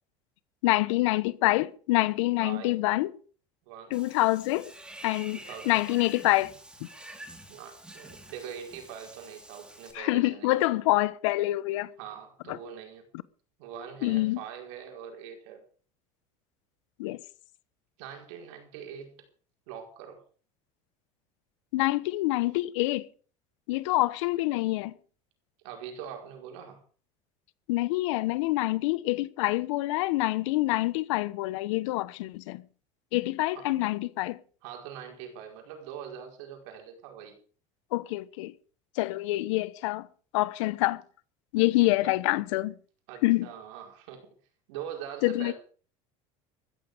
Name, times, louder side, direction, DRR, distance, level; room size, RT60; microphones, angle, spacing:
voice 1, 0.6-3.1 3.9-4.7 5.0-5.4 5.7-6.5 9.9-11.9 14.0-14.4 17.0-17.2 21.7-23.0 23.7-24.9 27.7-32.6 33.1-34.4 37.9-38.5 39.0-40.1 40.3-41.0 41.5-42.7 43.2-43.5 45.2-45.5, left 19 dB, 90° left, 1.0 m, -26 dB
voice 2, 2.4-2.8 3.7-4.0 5.5-5.8 7.5-10.7 12.0-13.0 13.6-15.6 18.0-19.3 19.7-20.2 25.6-26.8 33.5-33.8 34.6-37.4 41.8-42.1 43.1-44.3 44.7-45.5, right 8 dB, 80° right, 5.1 m, -43 dB
Water / Bathtub (filling or washing), 3.9-9.9, right 1 dB, 5° right, 3.7 m, -48 dB
14.5 x 14.0 x 5.1 m
supercardioid pair, 125°, 15 cm